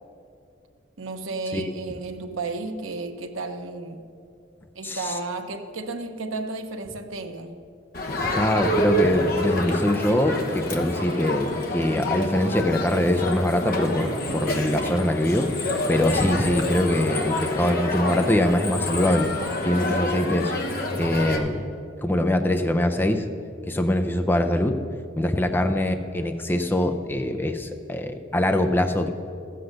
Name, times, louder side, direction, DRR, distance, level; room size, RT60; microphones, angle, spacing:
voice 1, 1.0-4.1 4.7-7.6, right 3 dB, 85° right, 6 dB, 0.9 m, -33 dB
voice 2, 4.8-5.2 8.2-15.5 15.9-19.3 19.6-20.5 21.0-21.6 22.0-23.3 23.7-24.8 25.2-29.1, left 1 dB, 10° left, 6 dB, 0.5 m, -23 dB
Crowd, 7.9-21.4, left 1 dB, 45° left, 1.1 m, -27 dB
14.0 x 7.9 x 6.5 m, 2.6 s
head